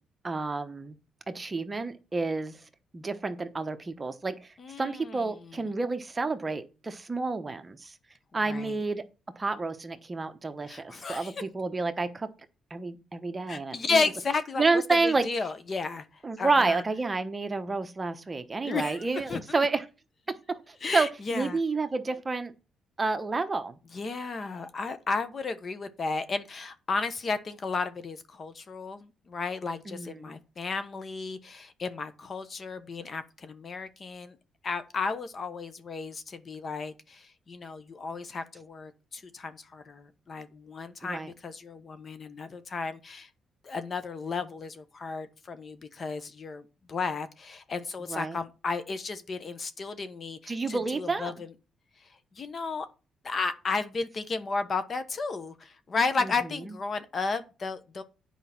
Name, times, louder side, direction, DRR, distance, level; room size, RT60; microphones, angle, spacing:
voice 1, 0.2-1.0 1.3-2.6 2.9-4.4 4.8-7.9 8.3-9.0 9.4-12.3 12.7-14.0 14.6-15.3 16.2-19.8 20.7-22.5 23.0-23.8 29.9-30.4 41.0-41.3 48.1-48.4 50.5-51.3 56.2-56.3 56.6-56.7, right 3 dB, 25° right, 1.0 m, -29 dB
voice 2, 4.6-5.6 8.5-8.8 10.7-11.3 13.5-16.0 16.4-16.8 18.6-19.0 19.3-19.4 20.8-21.6 23.9-34.4 34.6-43.3 43.6-51.5 52.4-52.9 53.2-58.0, left 4 dB, 40° left, 1.1 m, -33 dB
9.1 x 5.0 x 5.9 m
cardioid pair, 90°, 0 cm